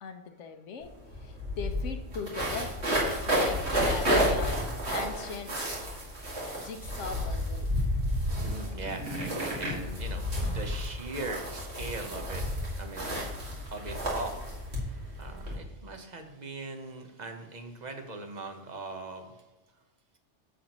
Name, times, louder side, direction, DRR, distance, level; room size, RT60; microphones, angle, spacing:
voice 1, 0.0-6.0 6.6-7.7, left 5 dB, 85° left, 6 dB, 1.1 m, -40 dB
sound 1, 0.8-0.9 1.1-15.6, equal, 65° right, 2.4 m, -31 dB
voice 2, 8.1-19.3, right 2 dB, 40° right, 5 dB, 1.1 m, -41 dB
9.9 x 7.2 x 3.0 m, 1.1 s
omnidirectional pair, 1.2 m